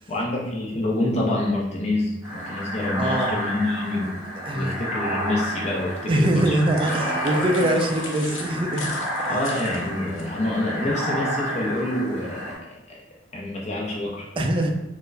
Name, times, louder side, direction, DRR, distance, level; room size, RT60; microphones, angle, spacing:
voice 1, 0.1-4.2 4.5-6.6 9.3-13.0 13.3-14.3, left 1 dB, 35° left, -3 dB, 0.4 m, -27 dB
sound 1, 2.2-12.6, equal, 10° right, 1.3 m, -31 dB
voice 2, 3.0-3.3 4.4-4.8 6.1-8.9 9.2-9.4 14.4-14.7, right 1 dB, 25° right, 4 dB, 0.3 m, -23 dB
sound 2, 6.2-10.3, left 4 dB, 85° left, 0.5 m, -40 dB
sound 3, 6.8-8.9, right 2 dB, 10° left, 1.4 m, -33 dB
4.3 x 2.1 x 2.5 m, 0.94 s
head